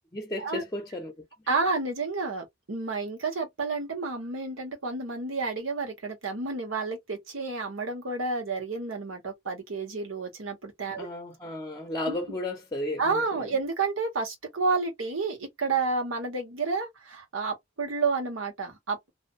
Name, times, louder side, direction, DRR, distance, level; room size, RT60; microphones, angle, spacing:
voice 1, 0.1-1.1 11.0-13.5, left 1 dB, 15° left, 0.6 m, -34 dB
voice 2, 1.5-11.1 12.1-12.4 13.0-19.1, right 4 dB, 85° right, 1.3 m, -30 dB
2.6 x 2.2 x 2.6 m
head